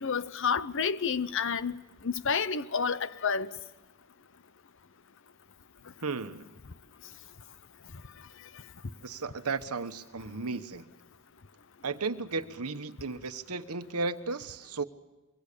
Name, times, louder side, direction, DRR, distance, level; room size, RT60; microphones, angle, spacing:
voice 1, 0.0-1.8 2.0-3.5, left 6 dB, 60° left, 0.8 m, -29 dB
voice 2, 6.0-6.5 9.0-10.9 11.8-14.8, right 4 dB, 85° right, 1.2 m, -34 dB
25.5 x 23.5 x 6.8 m
head